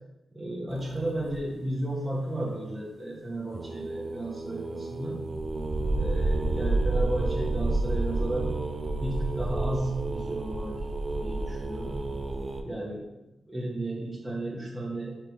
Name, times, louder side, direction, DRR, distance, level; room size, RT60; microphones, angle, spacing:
voice 1, 0.3-5.3 5.9-8.5 9.0-12.0 12.6-13.1 13.5-15.2, right 1 dB, 5° right, -5 dB, 1.0 m, -34 dB
sound 1, 0.7-1.4 3.5-12.6, right 2 dB, 30° right, 0.6 m, -30 dB
5.2 x 4.5 x 5.1 m, 1.0 s
cardioid pair, 100°, 0 cm